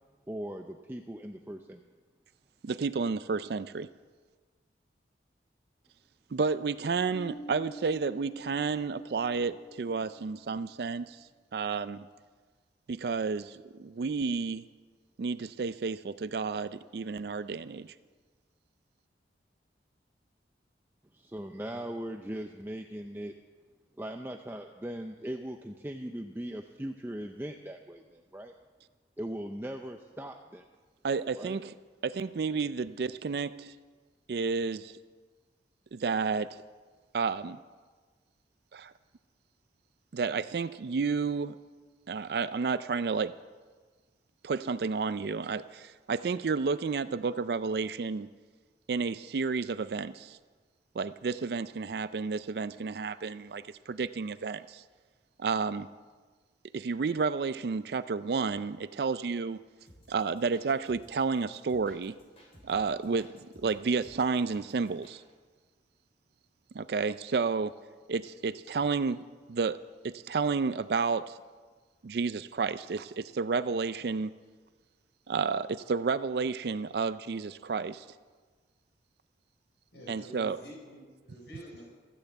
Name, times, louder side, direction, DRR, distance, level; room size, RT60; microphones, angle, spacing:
voice 1, 0.3-1.8 21.1-23.3 24.0-28.5 29.2-30.7 31.3-31.6, right 1 dB, 10° right, 4 dB, 0.5 m, -39 dB
voice 2, 2.6-3.9 6.3-11.2 11.5-12.1 12.9-14.6 15.2-17.9 31.0-31.7 32.0-33.7 34.3-34.9 35.9-36.5 37.1-37.6 38.7-38.9 40.1-41.6 42.1-43.3 44.4-48.3 48.9-50.4 51.0-54.8 55.4-55.9 56.7-59.6 60.1-62.2 62.6-63.3 63.6-65.2 66.7-67.8 68.1-69.2 69.5-69.8 70.0-71.3 72.0-74.3 75.3-78.0 80.1-80.6, right 4 dB, 65° right, 14 dB, 0.4 m, -31 dB
Bass guitar, 7.1-10.6, right 1 dB, 65° left, 0.9 m, -47 dB
sound 1, 59.9-65.2, equal, 35° left, 3.6 m, -57 dB
voice 3, 79.9-82.0, right 1 dB, 85° left, -3 dB, 4.6 m, -48 dB
14.0 x 10.0 x 8.1 m, 1.4 s
head